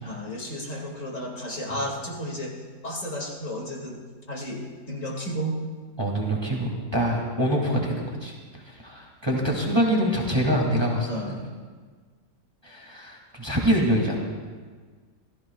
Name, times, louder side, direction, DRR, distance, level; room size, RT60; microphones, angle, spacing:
voice 1, 0.0-2.6 2.8-4.0 4.3-5.5 11.1-11.4, equal, 55° left, -2 dB, 2.8 m, -33 dB
voice 2, 6.0-8.3 8.7-11.4 12.6-14.2, equal, 15° right, -1 dB, 2.2 m, -25 dB
26.5 x 16.0 x 2.4 m, 1.5 s
omnidirectional pair, 1.6 m